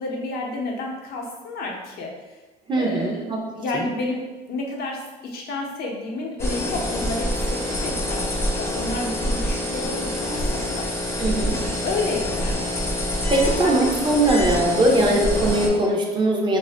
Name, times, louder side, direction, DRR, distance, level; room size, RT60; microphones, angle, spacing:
voice 1, 0.0-2.4 2.8-10.8 11.8-12.7 13.4-13.8 14.4-14.5, left 2 dB, 70° left, 0 dB, 0.6 m, -31 dB
voice 2, 2.7-3.4 3.7-3.9 11.2-11.6 13.3-16.6, right 1 dB, 30° right, -1 dB, 0.5 m, -20 dB
sound 1, 6.4-15.7, left 1 dB, 15° left, 0.6 m, -26 dB
2.4 x 2.1 x 3.3 m, 1.2 s
cardioid pair, 110°, 17 cm